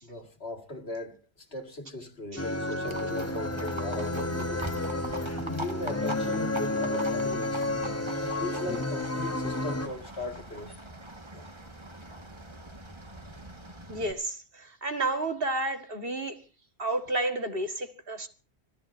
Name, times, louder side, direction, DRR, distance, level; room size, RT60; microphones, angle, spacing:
voice 1, 0.0-4.7 5.4-7.7 8.2-10.8 11.3-11.6, left 2 dB, 60° left, 2.3 m, -38 dB
sound 1, 2.4-9.9, left 2 dB, 15° left, 0.9 m, -31 dB
Livestock farm animals working animals, 2.9-14.1, right 1 dB, 25° right, 1.7 m, -42 dB
voice 2, 13.9-16.4 16.8-18.3, right 2 dB, 55° right, 2.0 m, -31 dB
26.0 x 16.0 x 2.7 m
omnidirectional pair, 1.2 m